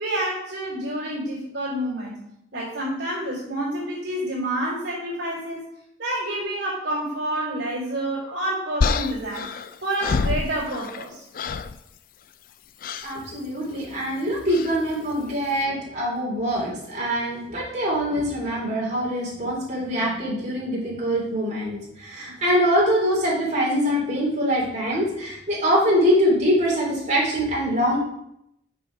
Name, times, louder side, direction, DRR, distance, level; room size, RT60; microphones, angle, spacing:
voice 1, 0.0-2.2 2.5-5.6 6.0-9.5 9.8-11.2, right 1 dB, 65° right, -7 dB, 3.3 m, -28 dB
sound 1, 8.8-11.1 11.3-11.8 12.8-13.1 14.5-14.8, left 4 dB, 50° left, 0.4 m, -26 dB
voice 2, 13.0-28.0, equal, 40° right, -5 dB, 3.2 m, -23 dB
6.5 x 5.1 x 6.0 m, 0.79 s
head